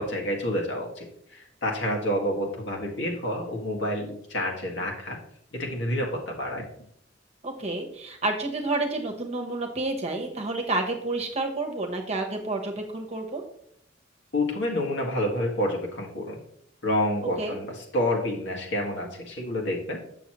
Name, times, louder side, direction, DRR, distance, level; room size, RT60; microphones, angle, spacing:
voice 1, 0.0-5.2 5.5-6.6 14.3-16.4 16.8-20.0, left 1 dB, 70° left, 0 dB, 2.0 m, -28 dB
voice 2, 7.4-13.4 17.4-17.6, right 2 dB, 35° right, 2 dB, 1.2 m, -29 dB
8.1 x 6.9 x 3.1 m, 0.68 s
head